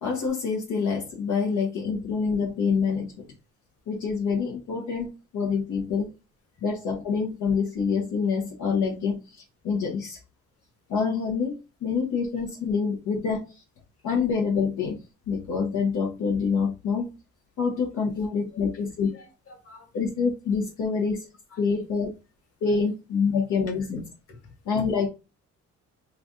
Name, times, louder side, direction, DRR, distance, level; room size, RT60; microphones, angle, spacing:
voice 1, 0.0-3.2 3.9-5.1 5.3-6.1 6.6-10.2 10.9-13.6 14.0-15.0 15.3-17.1 17.6-19.1 19.9-21.3 21.6-22.1 22.6-24.0 24.7-25.1, left 5 dB, 75° left, -2 dB, 1.0 m, -26 dB
voice 2, 18.5-19.9 21.5-21.9 22.6-22.9 24.3-24.9, left 3 dB, 50° left, 2 dB, 1.6 m, -49 dB
3.2 x 2.5 x 3.8 m, 0.29 s
cardioid pair, 90°, 30 cm